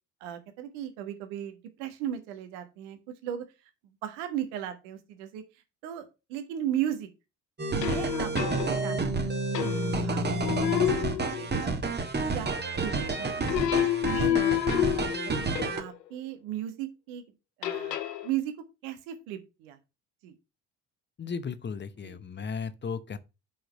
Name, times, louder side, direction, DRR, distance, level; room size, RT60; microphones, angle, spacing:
voice 1, 0.2-3.5 4.0-5.4 5.8-7.1 7.7-10.6 10.9-11.7 12.2-13.5 14.0-14.4 14.9-17.2 17.6-18.5 18.8-19.8 20.2-20.3 22.0-22.2, right 11 dB, 60° right, 1.5 m, -36 dB
sound 1, 7.6-15.8, right 3 dB, 20° right, 1.5 m, -30 dB
sound 2, 7.8-9.1 9.5-10.1 10.4-11.8 13.5-15.9 17.6-18.3, left 12 dB, 75° left, 0.8 m, -29 dB
voice 2, 21.2-23.2, left 5 dB, 20° left, 0.9 m, -35 dB
5.8 x 5.4 x 6.7 m
figure-of-eight pair, 50°, 50 cm